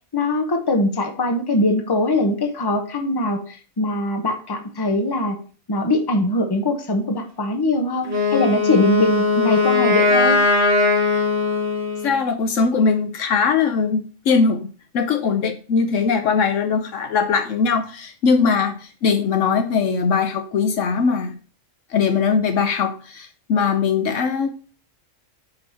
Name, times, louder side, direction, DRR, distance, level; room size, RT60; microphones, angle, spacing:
voice 1, 0.1-5.4 5.7-10.4, left 1 dB, 20° left, 5 dB, 0.8 m, -21 dB
Wind instrument woodwind instrument, 8.0-12.2, left 3 dB, 40° right, 2.0 m, -19 dB
voice 2, 12.0-14.6 14.9-18.8 19.0-21.3 21.9-24.5, left 5 dB, 70° left, 8 dB, 1.0 m, -20 dB
5.2 x 4.7 x 5.6 m, 0.39 s
omnidirectional pair, 1.4 m